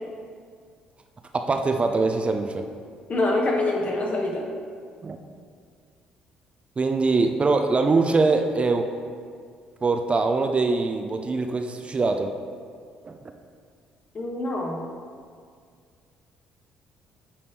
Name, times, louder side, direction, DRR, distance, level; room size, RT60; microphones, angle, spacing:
voice 1, 1.3-2.7 5.0-5.2 6.8-8.9 9.8-12.3 13.0-13.2, right 3 dB, 30° right, 6 dB, 0.5 m, -23 dB
voice 2, 3.1-4.5 14.1-14.8, left 2 dB, 40° left, -1 dB, 1.3 m, -25 dB
9.5 x 4.2 x 3.2 m, 2.1 s
hypercardioid pair, 50°, 4 cm